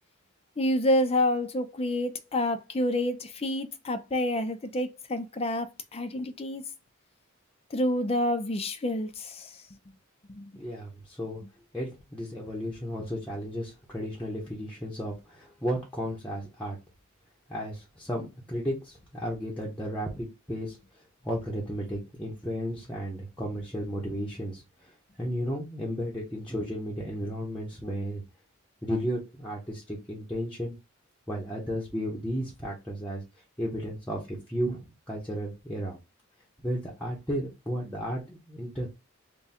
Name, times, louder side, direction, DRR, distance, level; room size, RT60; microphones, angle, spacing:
voice 1, 0.6-6.6 7.7-9.6 10.3-10.5, left 1 dB, 30° left, 0.5 m, -28 dB
voice 2, 10.5-11.4 11.7-16.8 17.5-20.8 21.2-28.2 28.8-30.8 31.3-33.2 33.6-36.0 36.6-38.9, equal, 5° left, 0.9 m, -34 dB
3.5 x 2.3 x 4.2 m
head